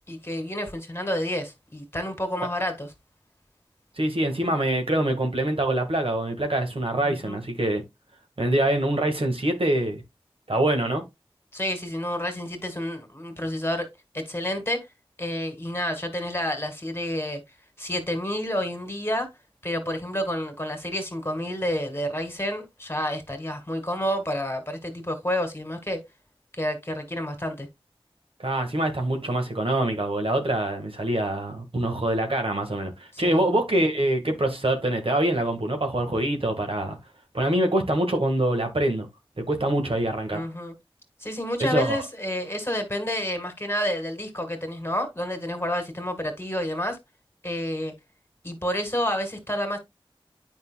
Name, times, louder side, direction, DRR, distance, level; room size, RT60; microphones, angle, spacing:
voice 1, 0.1-2.9 7.0-7.4 11.5-13.9 14.1-14.9 15.2-17.4 17.8-19.3 19.6-26.0 26.5-27.7 33.1-33.4 40.3-40.7 41.2-47.0 47.4-47.9 48.4-49.8, equal, 25° left, 2.0 m, -29 dB
voice 2, 4.0-7.8 8.4-10.0 10.5-11.0 28.4-37.0 37.3-39.1 39.4-40.4 41.6-42.0, right 1 dB, 75° right, 1.6 m, -25 dB
9.4 x 5.4 x 2.2 m
wide cardioid pair, 45°, 10 cm